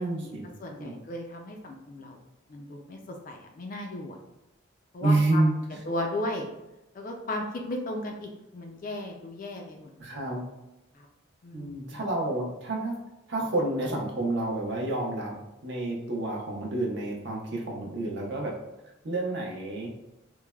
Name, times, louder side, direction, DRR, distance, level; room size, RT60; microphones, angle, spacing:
voice 1, 0.0-0.4 0.8-1.0 5.0-5.8 10.0-10.4 11.5-13.0 13.3-15.4 15.6-18.6 19.0-19.9, right 2 dB, 55° right, -1 dB, 0.6 m, -29 dB
voice 2, 0.6-2.2 2.5-4.2 4.9-5.4 5.9-6.5 6.9-10.2 10.9-11.1 11.4-12.0, left 1 dB, 40° left, 2 dB, 0.3 m, -36 dB
3.1 x 2.1 x 2.3 m, 0.94 s
head